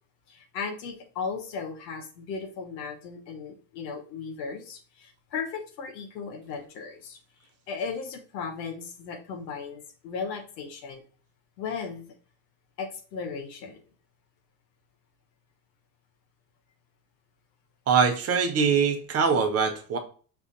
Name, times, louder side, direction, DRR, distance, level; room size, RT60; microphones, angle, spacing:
voice 1, 0.3-11.0 11.6-12.1 12.8-13.8, left 5 dB, 90° left, 4 dB, 0.9 m, -36 dB
voice 2, 17.9-20.0, right 6 dB, 30° right, 6 dB, 0.7 m, -23 dB
5.7 x 2.6 x 2.5 m, 0.41 s
hypercardioid pair, 90°, 49 cm